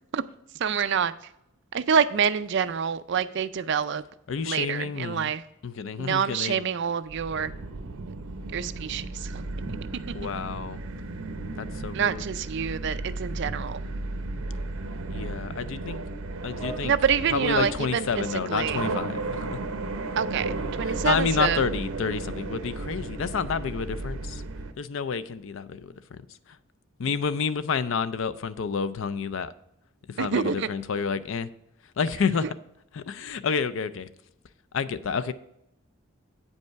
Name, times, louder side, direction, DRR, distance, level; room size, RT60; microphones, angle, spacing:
voice 1, 0.5-1.1 1.7-4.0 4.4-5.4 6.0-7.5 8.1-8.2 8.5-9.4 11.9-13.8 16.8-18.2 18.5-18.8 20.2-21.6 30.2-30.7 32.4-32.5, right 7 dB, 55° right, 0.4 m, -27 dB
voice 2, 4.3-5.3 5.6-6.6 10.1-10.8 11.6-12.3 15.1-16.0 16.4-16.9 17.3-19.6 20.8-24.4 24.8-26.6 27.0-29.5 30.1-31.5 32.0-32.4 32.9-34.1 34.7-35.3, left 5 dB, 65° left, 0.4 m, -29 dB
sound 1, 7.1-24.7, right 2 dB, 80° right, 0.7 m, -34 dB
sound 2, 10.9-11.7 12.0-12.1 12.4-12.6 12.9-13.0 13.2-13.5 14.1-15.1 15.8-15.9 16.2-16.3 16.6-17.8 18.6-19.6, equal, 25° left, 2.3 m, -44 dB
8.5 x 5.4 x 4.5 m
head